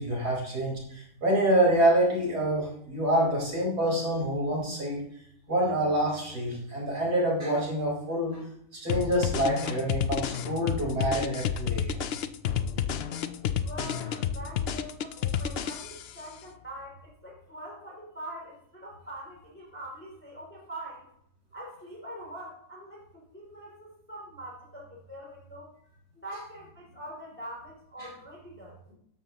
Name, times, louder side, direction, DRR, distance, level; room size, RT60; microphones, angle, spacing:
voice 1, 0.0-5.0 5.5-8.4 8.7-12.0 28.0-28.1, right 1 dB, 65° right, -3 dB, 5.3 m, -26 dB
sound 1, 8.9-16.2, left 8 dB, 90° left, 0.5 m, -30 dB
voice 2, 13.6-21.1 21.5-25.7 26.1-28.7, right 1 dB, 5° left, -4 dB, 3.1 m, -43 dB
13.0 x 11.0 x 3.0 m, 0.71 s
omnidirectional pair, 1.8 m